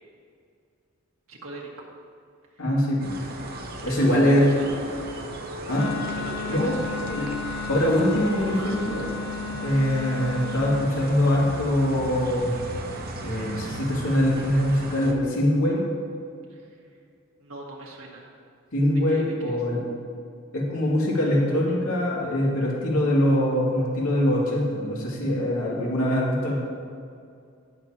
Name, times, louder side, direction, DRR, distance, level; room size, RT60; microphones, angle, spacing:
voice 1, 1.3-1.9 2.5-2.7 3.9-4.0 4.2-5.1 6.1-7.2 16.5-17.0 17.4-18.3 19.1-19.6, right 2 dB, 75° right, -2 dB, 1.9 m, -41 dB
voice 2, 2.6-3.1 3.8-4.5 5.7-5.9 6.5-6.7 7.1-7.3 7.6-9.1 9.6-12.6 13.2-15.8 18.7-19.8 20.5-26.5, left 1 dB, 80° left, -5 dB, 2.5 m, -23 dB
sound 1, 3.0-15.1, right 1 dB, 45° right, 0.9 m, -36 dB
Wind instrument woodwind instrument, 5.7-10.9, left 5 dB, 55° left, 0.8 m, -34 dB
18.0 x 6.8 x 3.0 m, 2.4 s
head